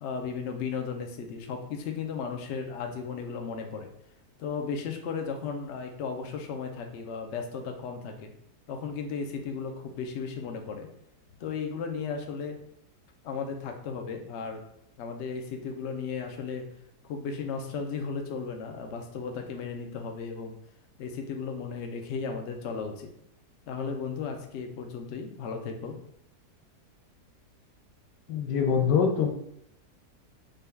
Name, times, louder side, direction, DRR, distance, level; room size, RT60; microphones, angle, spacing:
voice 1, 0.0-3.9 4.4-8.3 8.7-10.9 11.4-12.6 13.2-14.6 15.0-16.6 17.0-20.6 21.0-23.1 23.7-26.0, left 5 dB, 65° left, 4 dB, 0.7 m, -35 dB
voice 2, 28.3-29.3, left 6 dB, 85° left, 4 dB, 1.3 m, -24 dB
5.3 x 2.3 x 3.3 m, 0.76 s
omnidirectional pair, 1.8 m